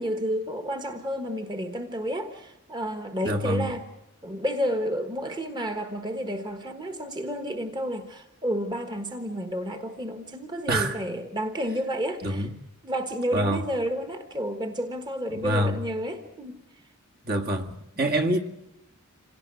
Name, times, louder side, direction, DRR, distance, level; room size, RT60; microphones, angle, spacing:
voice 1, 0.0-3.9 4.2-12.5 12.8-16.6, equal, 20° right, 7 dB, 1.5 m, -31 dB
voice 2, 3.2-3.7 10.7-11.0 12.2-12.5 13.3-13.6 15.4-15.8 17.3-18.4, right 1 dB, 45° right, 3 dB, 1.9 m, -25 dB
27.0 x 18.0 x 9.5 m, 0.86 s
head